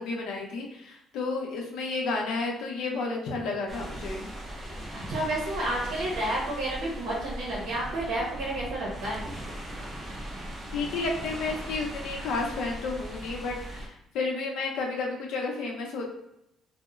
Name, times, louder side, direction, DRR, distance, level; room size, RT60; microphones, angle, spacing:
voice 1, 0.0-4.3 10.7-16.1, left 3 dB, 70° left, 0 dB, 0.6 m, -31 dB
sound 1, 3.7-13.9, right 1 dB, 15° right, 0.4 m, -39 dB
voice 2, 4.9-9.2, right 1 dB, 65° right, -3 dB, 0.7 m, -30 dB
2.9 x 2.0 x 2.3 m, 0.83 s
cardioid pair, 180°, 0 cm